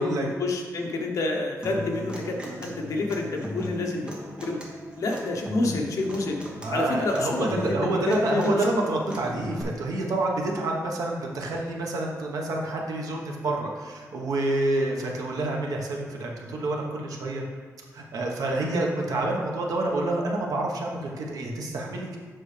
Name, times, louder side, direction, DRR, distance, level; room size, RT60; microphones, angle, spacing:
voice 1, 0.0-4.1 4.4-4.6 5.0-6.4 6.7-7.8 8.1-8.8, left 2 dB, 60° left, 1 dB, 0.9 m, -28 dB
Human voice / Acoustic guitar, 1.6-9.6, equal, 15° right, 1.0 m, -37 dB
voice 2, 6.5-17.4 17.9-22.2, right 2 dB, 75° right, 0 dB, 1.2 m, -28 dB
7.8 x 5.8 x 3.3 m, 1.5 s
wide cardioid pair, 175°, 6 cm